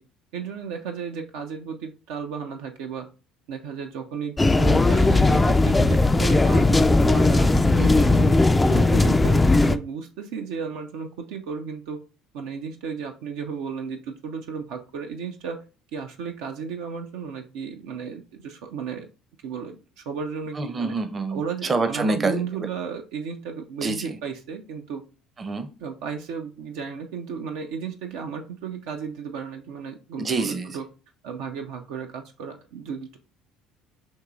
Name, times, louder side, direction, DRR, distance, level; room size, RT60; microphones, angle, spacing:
voice 1, 0.3-3.1 3.5-8.1 8.7-12.0 12.3-15.6 15.9-19.1 19.4-20.9 21.3-25.0 25.8-30.8 31.2-33.2, right 6 dB, 70° right, 4 dB, 0.5 m, -34 dB
sound 1, 4.4-9.8, left 2 dB, 15° left, 0.3 m, -18 dB
voice 2, 7.6-8.4 20.5-22.7 23.8-24.2 25.4-25.7 30.2-30.7, right 3 dB, 35° right, 8 dB, 0.7 m, -27 dB
5.4 x 2.9 x 2.4 m, 0.34 s
hypercardioid pair, 65°, 0 cm